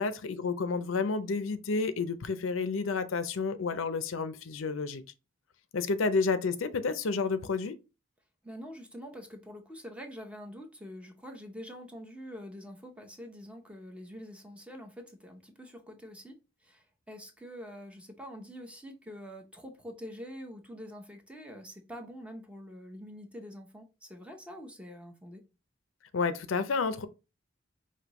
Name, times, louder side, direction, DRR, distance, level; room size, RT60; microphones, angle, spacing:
voice 1, 0.0-5.0 5.7-7.7 26.1-27.1, left 4 dB, 85° left, 0.5 m, -30 dB
voice 2, 8.4-16.4 16.6-25.4, equal, 5° right, 0.7 m, -45 dB
5.1 x 2.7 x 3.0 m
head